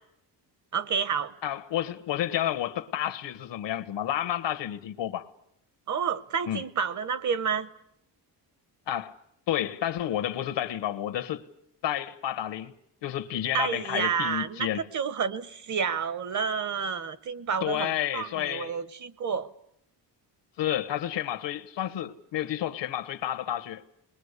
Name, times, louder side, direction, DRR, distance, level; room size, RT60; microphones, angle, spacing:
voice 1, 0.7-1.3 5.9-7.7 13.5-19.5, right 6 dB, 45° right, 1.0 m, -30 dB
voice 2, 1.4-5.3 6.5-6.6 8.9-9.1 9.5-11.4 11.8-12.7 13.0-14.9 17.6-18.7 20.6-23.9, left 11 dB, 80° left, 1.4 m, -30 dB
29.0 x 21.5 x 8.3 m
wide cardioid pair, 175°, 43 cm